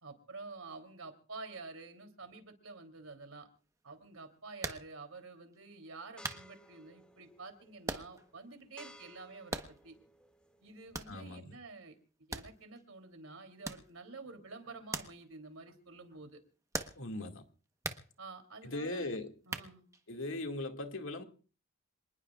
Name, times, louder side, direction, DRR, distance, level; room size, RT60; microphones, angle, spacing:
voice 1, 0.0-3.5 3.8-9.9 10.6-12.0 12.3-16.4 18.2-19.8, right 3 dB, 80° right, 3.4 m, -49 dB
sound 1, 4.6-5.0 5.5-5.6 6.2-6.5 7.9-8.3 8.6-8.7 9.5-10.0 10.9-11.2 12.3-12.8 13.6-13.9 14.9-15.2 15.5-15.6 16.7-17.1 17.8-18.1 19.4-20.0, right 2 dB, 15° right, 1.2 m, -40 dB
sound 2, 6.2-11.2, equal, 5° left, 2.0 m, -59 dB
voice 2, 11.1-11.6 17.0-17.4 18.6-19.3 20.1-21.2, left 2 dB, 70° left, 2.3 m, -39 dB
27.0 x 20.0 x 2.5 m
head